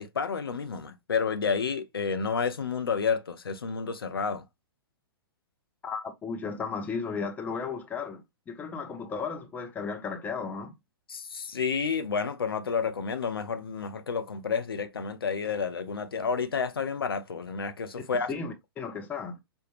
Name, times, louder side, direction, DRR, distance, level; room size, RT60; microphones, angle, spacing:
voice 1, 0.0-4.4 11.1-18.3, left 5 dB, 70° left, 0.6 m, -30 dB
voice 2, 5.8-10.7 18.3-19.4, left 5 dB, 15° left, 0.6 m, -35 dB
5.1 x 2.2 x 3.1 m
figure-of-eight pair, 110°, 13 cm